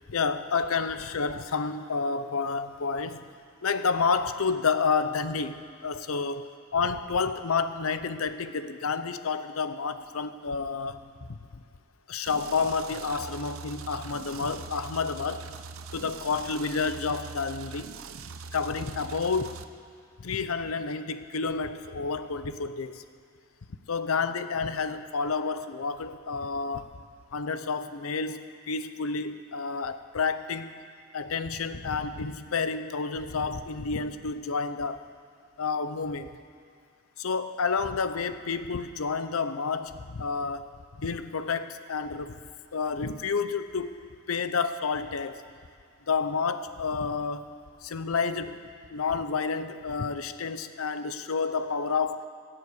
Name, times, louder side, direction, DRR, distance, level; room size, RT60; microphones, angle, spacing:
voice 1, 0.1-3.2 3.6-5.6 5.8-6.5 6.7-11.0 11.3-11.6 12.1-15.4 15.9-17.9 18.5-19.6 20.2-23.0 23.9-26.9 27.3-28.4 28.7-30.8 31.1-35.1 35.6-36.4 37.2-40.7 41.0-42.4 42.7-44.0 44.3-45.4 46.1-47.5 47.8-48.6 48.9-52.2, left 5 dB, 85° left, 11 dB, 0.7 m, -30 dB
sound 1, 12.3-19.6, right 4 dB, 75° right, 0.7 m, -42 dB
17.0 x 7.7 x 8.2 m, 2.2 s
head